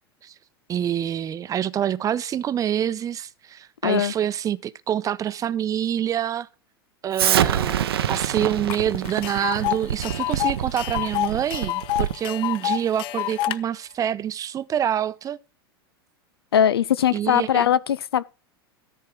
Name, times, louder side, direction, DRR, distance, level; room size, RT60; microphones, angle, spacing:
voice 1, 0.7-6.5 7.0-15.4 17.1-17.7, right 10 dB, 25° right, 0.7 m, -26 dB
voice 2, 3.8-4.1 16.5-18.2, left 10 dB, 75° left, 0.5 m, -20 dB
Explosion, 7.1-12.3, right 10 dB, 70° right, 0.8 m, -26 dB
Tick, 8.7-8.8 9.1-13.6, left 14 dB, 40° left, 0.7 m, -27 dB
13.5 x 4.6 x 6.1 m
figure-of-eight pair, 90°, 13 cm